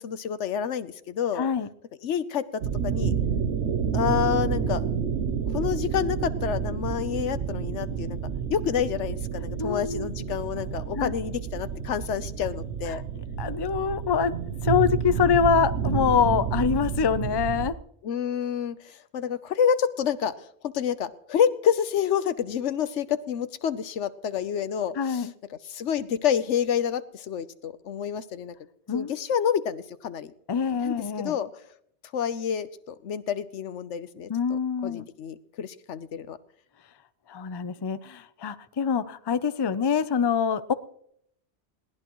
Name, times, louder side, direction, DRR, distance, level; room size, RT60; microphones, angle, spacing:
voice 1, 0.0-1.5 2.0-3.1 3.9-4.8 5.5-8.2 8.5-13.0 18.0-25.3 25.7-28.5 28.9-30.3 30.8-31.5 32.1-36.4, left 8 dB, 85° left, 14 dB, 1.1 m, -28 dB
voice 2, 1.3-1.7 9.6-10.1 11.0-11.1 12.9-13.0 13.4-14.4 14.6-17.7 25.0-25.3 28.9-29.2 30.5-31.4 34.3-35.1 37.3-40.7, left 6 dB, 30° left, 13 dB, 0.4 m, -25 dB
sound 1, 2.6-17.7, right 7 dB, 80° right, 1.1 m, -29 dB
21.5 x 18.0 x 3.1 m, 0.70 s
omnidirectional pair, 1.2 m